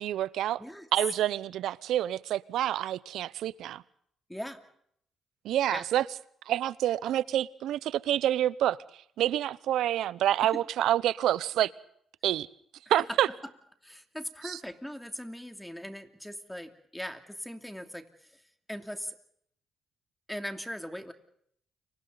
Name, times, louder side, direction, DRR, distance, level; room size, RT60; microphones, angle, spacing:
voice 1, 0.0-0.6 0.9-3.8 5.4-6.0 6.5-8.8 9.2-11.7 12.2-12.5 12.9-13.3 14.4-14.6, right 12 dB, 80° right, 0.8 m, -27 dB
voice 2, 4.3-4.6 5.7-5.9 10.4-10.6 13.0-13.4 13.8-18.4 18.7-19.2 20.3-21.1, equal, 5° left, 2.8 m, -40 dB
30.0 x 25.0 x 4.0 m
cardioid pair, 90°, 0 cm